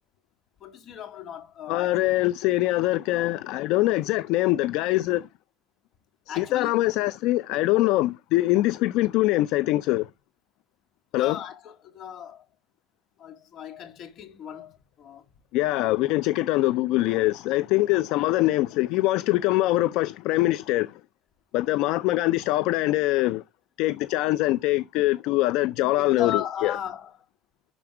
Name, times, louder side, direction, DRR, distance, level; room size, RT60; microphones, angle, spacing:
voice 1, 0.6-2.1 6.3-6.8 11.1-12.5 13.2-15.3 26.0-27.2, left 9 dB, 45° left, 2.1 m, -36 dB
voice 2, 1.7-5.3 6.3-10.1 11.1-11.4 15.5-21.0 21.5-23.4 23.8-26.7, left 17 dB, 65° left, 0.4 m, -23 dB
12.0 x 4.4 x 4.9 m
cardioid pair, 140°, 0 cm